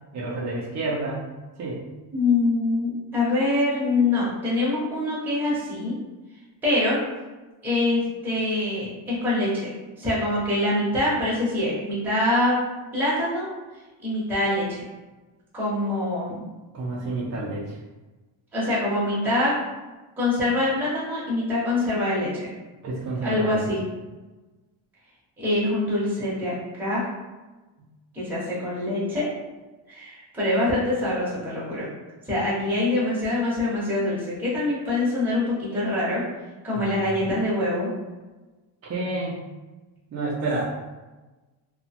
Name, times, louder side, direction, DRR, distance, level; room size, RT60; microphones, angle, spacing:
voice 1, 0.1-1.3 1.6-1.8 16.7-17.8 22.8-23.6 36.7-37.0 38.8-39.4 40.1-40.9, right 2 dB, 40° right, -5 dB, 0.4 m, -29 dB
voice 2, 2.1-5.9 6.6-7.0 7.6-9.7 10.0-12.6 12.9-13.5 14.0-14.8 15.5-16.4 18.5-19.5 20.2-22.5 23.2-23.8 25.4-27.0 28.1-29.3 29.9-31.9 32.3-36.2 36.6-37.9, left 2 dB, 5° right, -9 dB, 0.7 m, -24 dB
2.9 x 2.1 x 2.7 m, 1.2 s
cardioid pair, 165°, 47 cm